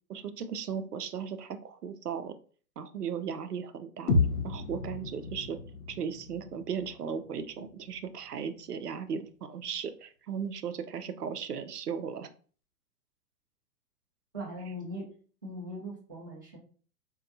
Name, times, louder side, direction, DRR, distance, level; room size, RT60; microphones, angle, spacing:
voice 1, 0.1-2.3 2.8-4.1 4.4-5.6 5.9-12.3, right 7 dB, 80° right, 10 dB, 0.5 m, -36 dB
sound 1, 4.1-8.1, left 3 dB, 70° left, 0.8 m, -32 dB
voice 2, 14.3-15.1 15.4-16.6, equal, 15° right, -6 dB, 0.3 m, -40 dB
4.1 x 2.3 x 2.5 m, 0.41 s
figure-of-eight pair, 110°, 46 cm